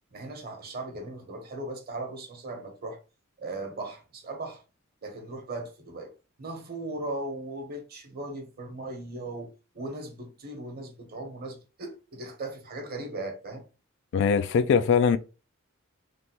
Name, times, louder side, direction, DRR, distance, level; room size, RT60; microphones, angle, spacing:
voice 1, 0.1-3.0 3.4-4.6 5.0-6.1 6.4-13.6, right 2 dB, 45° right, 1.0 m, -38 dB
voice 2, 14.1-15.2, left 6 dB, 60° left, 0.3 m, -21 dB
3.3 x 2.5 x 2.9 m
head